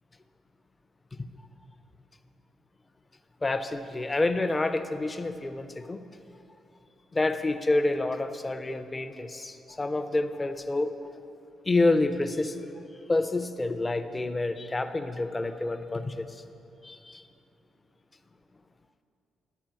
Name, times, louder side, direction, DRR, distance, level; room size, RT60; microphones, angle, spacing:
voice 1, 3.4-6.0 7.1-10.9 11.6-12.6 13.1-16.3 16.8-17.2, left 2 dB, 15° left, 9 dB, 0.5 m, -28 dB
12.0 x 5.0 x 7.4 m, 2.8 s
cardioid pair, 145°, 0 cm